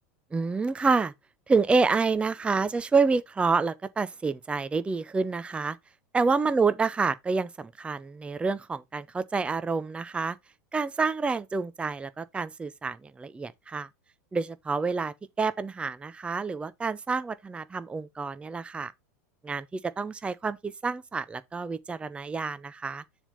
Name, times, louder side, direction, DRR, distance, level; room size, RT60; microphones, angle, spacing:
voice 1, 0.3-1.1 1.5-5.8 6.1-10.4 10.7-13.9 14.3-18.9 19.4-23.0, right 4 dB, 10° right, 0.5 m, -28 dB
7.1 x 3.4 x 5.4 m
hypercardioid pair, 105°, 9 cm